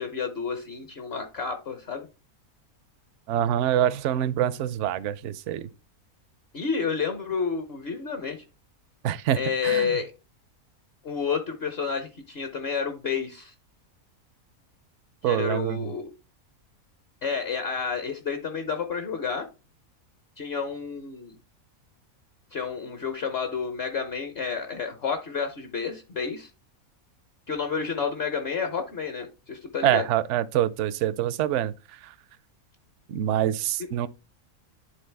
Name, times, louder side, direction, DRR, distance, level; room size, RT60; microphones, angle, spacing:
voice 1, 0.0-2.1 6.5-8.4 9.3-10.1 11.0-13.5 15.2-16.1 17.2-19.5 20.4-21.4 22.5-26.5 27.5-30.0, left 6 dB, 50° left, 1.0 m, -30 dB
voice 2, 3.3-5.7 9.0-9.9 15.2-15.9 29.8-31.7 32.0-32.1 33.1-34.1, right 11 dB, 65° right, 0.8 m, -25 dB
11.0 x 3.7 x 3.3 m
omnidirectional pair, 1.5 m